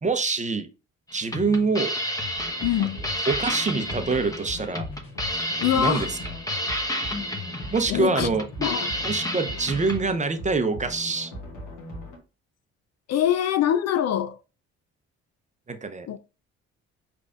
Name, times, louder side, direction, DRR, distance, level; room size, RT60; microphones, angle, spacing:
voice 1, 0.0-0.7 1.1-1.9 3.3-4.9 5.8-6.1 7.7-8.4 9.0-11.3 15.7-16.2, right 4 dB, 20° right, 0.7 m, -25 dB
sound 1, 1.1-10.0, left 1 dB, 10° left, 0.9 m, -31 dB
sound 2, 2.4-12.2, equal, 70° left, 1.5 m, -40 dB
voice 2, 2.6-3.0 5.6-6.1 7.9-8.3 8.6-9.0 13.1-14.4 16.1-16.2, left 10 dB, 55° left, 0.4 m, -24 dB
5.0 x 3.4 x 2.4 m
hypercardioid pair, 55°, 32 cm